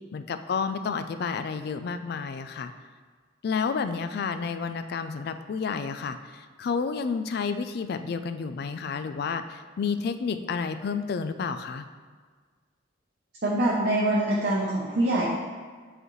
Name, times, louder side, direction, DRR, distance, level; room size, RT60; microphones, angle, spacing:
voice 1, 0.1-2.7 3.4-11.8, left 5 dB, 55° left, 10 dB, 0.3 m, -30 dB
voice 2, 13.4-15.2, right 1 dB, 55° right, -5 dB, 0.8 m, -24 dB
8.0 x 4.0 x 3.1 m, 1.6 s
head